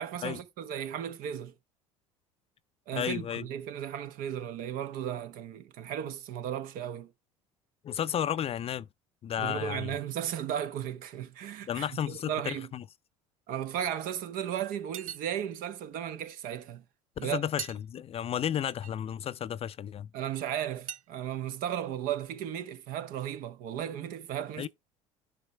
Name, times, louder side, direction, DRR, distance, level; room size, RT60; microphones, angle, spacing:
voice 1, 0.0-1.5 2.9-7.1 9.4-12.7 13.5-16.8 17.2-17.4 20.1-24.7, right 10 dB, 55° right, 0.9 m, -35 dB
voice 2, 2.9-3.5 7.8-8.9 9.2-9.9 11.7-12.8 17.2-20.1 24.6-24.7, left 9 dB, 35° left, 0.5 m, -33 dB
sound 1, 14.5-14.6 14.9-15.6 16.6-16.7 17.2-17.3 17.6-17.8 18.7-18.9 20.9-21.0, right 10 dB, 85° right, 0.5 m, -40 dB
10.5 x 4.7 x 3.2 m
hypercardioid pair, 70°, 17 cm